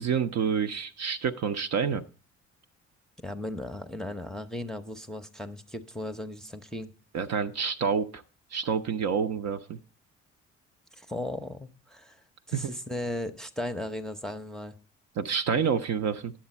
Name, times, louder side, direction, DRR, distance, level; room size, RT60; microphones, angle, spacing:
voice 1, 0.0-2.0 7.1-8.2 8.5-9.8 12.5-12.7 15.2-16.3, right 6 dB, 45° right, 8 dB, 0.7 m, -28 dB
voice 2, 3.2-6.9 10.9-12.2 12.5-14.7, left 1 dB, ahead, 5 dB, 0.7 m, -36 dB
10.5 x 7.4 x 4.2 m, 0.36 s
figure-of-eight pair, 50°, 38 cm